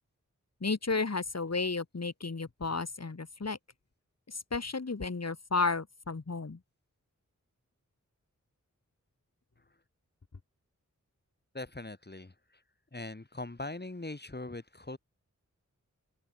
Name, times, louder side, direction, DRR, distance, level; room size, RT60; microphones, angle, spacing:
voice 1, 0.6-3.6 4.3-6.6, left 4 dB, 55° left, 4.1 m, -33 dB
voice 2, 11.5-12.6 12.9-15.0, left 2 dB, 35° left, 5.4 m, -41 dB
open air
wide cardioid pair, 65°, 30 cm